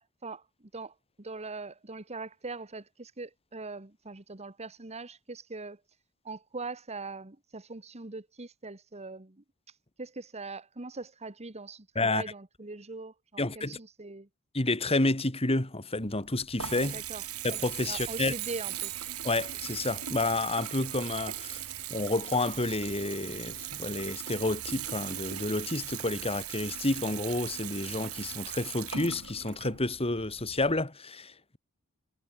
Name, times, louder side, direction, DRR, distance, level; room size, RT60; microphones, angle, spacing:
voice 1, 0.0-5.8 6.2-9.4 10.0-14.3 16.9-17.2 17.9-18.9, right 3 dB, 30° right, 1.5 m, -42 dB
voice 2, 13.4-13.8 14.5-17.0 17.4-18.3 19.2-21.6 21.9-31.6, left 2 dB, 25° left, 2.4 m, -30 dB
Water tap faucet / Bathtub (filling or washing) / Trickle dribble, 15.9-30.8, right 11 dB, 90° right, 4.4 m, -39 dB
sound 1, 17.3-19.1, right 14 dB, 45° right, 3.5 m, -42 dB
head